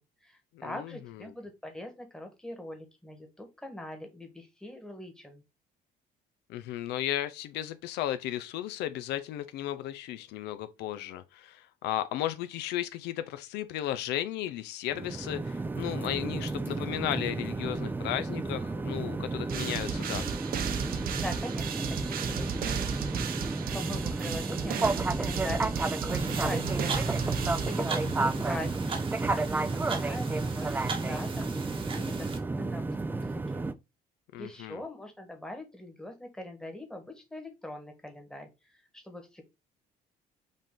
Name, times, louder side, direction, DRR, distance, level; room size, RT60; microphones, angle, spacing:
voice 1, 0.0-5.4 21.1-23.0 23.7-26.9 27.3-28.9 29.3-33.7 34.4-38.5 38.9-39.4, left 1 dB, 5° left, 1.3 m, -42 dB
voice 2, 0.6-1.3 6.5-20.2 34.3-34.8, left 12 dB, 85° left, 0.5 m, -35 dB
sound 1, 14.9-33.7, right 3 dB, 10° right, 0.3 m, -32 dB
sound 2, 19.5-28.3, right 7 dB, 60° right, 0.8 m, -36 dB
sound 3, 26.1-32.4, right 4 dB, 30° right, 1.0 m, -35 dB
5.2 x 2.6 x 3.6 m
cardioid pair, 110°, 17 cm